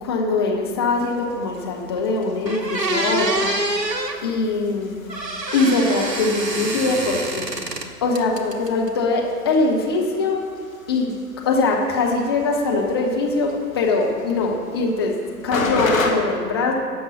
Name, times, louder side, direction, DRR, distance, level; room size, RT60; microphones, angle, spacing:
voice 1, 0.0-3.8 4.2-5.0 5.5-7.7 8.0-10.5 10.9-11.1 11.4-15.2 15.4-16.7, left 3 dB, 15° left, 0 dB, 0.7 m, -22 dB
sound 1, 0.9-16.1, left 4 dB, 55° left, 1.4 m, -35 dB
sound 2, 2.0-2.1 2.4-4.2 5.1-7.9 8.2-8.9, right 2 dB, 80° right, 1.2 m, -26 dB
12.0 x 5.4 x 6.1 m, 2.1 s
figure-of-eight pair, 125°, 49 cm